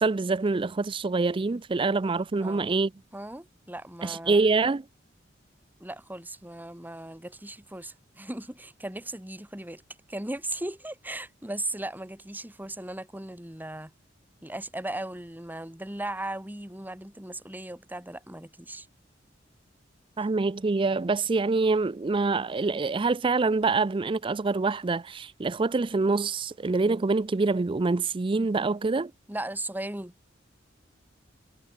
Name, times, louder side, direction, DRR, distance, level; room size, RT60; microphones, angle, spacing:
voice 1, 0.0-2.9 4.0-4.8 20.2-29.1, right 3 dB, 25° right, 0.4 m, -25 dB
voice 2, 2.4-2.7 3.1-4.4 5.8-9.8 10.1-13.9 14.4-18.9 29.3-30.1, right 1 dB, 10° right, 2.7 m, -37 dB
head